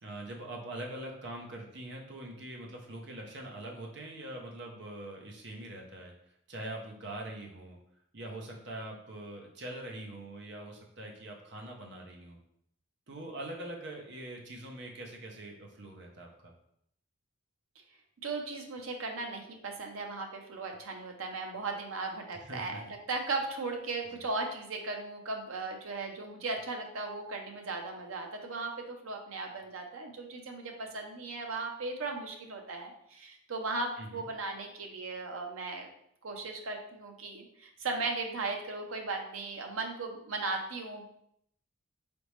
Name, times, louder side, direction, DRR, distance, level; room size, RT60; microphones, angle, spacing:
voice 1, 0.0-6.1 6.5-7.8 8.1-12.4 13.1-16.5 22.4-22.8 24.1-24.2 34.0-34.2, right 1 dB, 55° right, 0 dB, 0.8 m, -43 dB
voice 2, 18.2-35.9 36.2-41.1, right 3 dB, 90° right, 3 dB, 0.7 m, -37 dB
4.0 x 3.4 x 3.2 m, 0.72 s
head